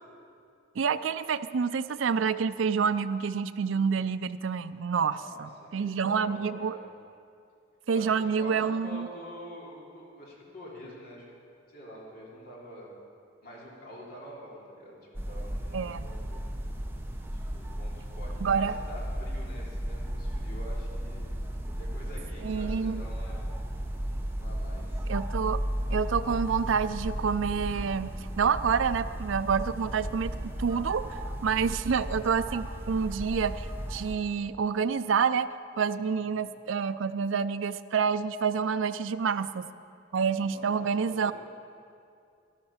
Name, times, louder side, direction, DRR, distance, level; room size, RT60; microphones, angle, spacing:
voice 1, 0.8-6.8 7.9-9.1 15.7-16.0 18.4-18.8 22.4-23.0 25.1-25.6 25.9-35.5 35.8-39.6 40.1-41.3, right 6 dB, 65° right, 12 dB, 0.4 m, -28 dB
voice 2, 5.0-6.9 7.9-13.0 13.4-15.0 15.2-16.5 17.3-21.3 21.6-23.4 24.3-25.1 36.0-36.3 40.5-41.3, equal, 50° left, -4 dB, 3.2 m, -46 dB
sound 1, 15.1-34.1, equal, 10° right, 1.0 m, -35 dB
12.5 x 12.0 x 5.8 m, 2.4 s
head